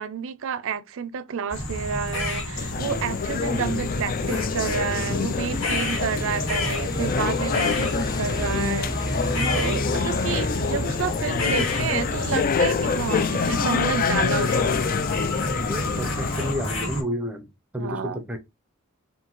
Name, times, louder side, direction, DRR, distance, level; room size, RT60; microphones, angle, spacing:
voice 1, 0.0-14.8 17.8-18.2, right 6 dB, 70° right, 0.4 m, -30 dB
sound 1, 1.5-17.0, left 1 dB, 65° left, 1.8 m, -30 dB
sound 2, 2.6-16.5, left 6 dB, 45° left, 0.4 m, -26 dB
sound 3, 2.9-14.6, equal, 20° left, 1.0 m, -35 dB
voice 2, 15.6-18.4, equal, 5° right, 0.7 m, -31 dB
5.8 x 2.6 x 3.0 m
head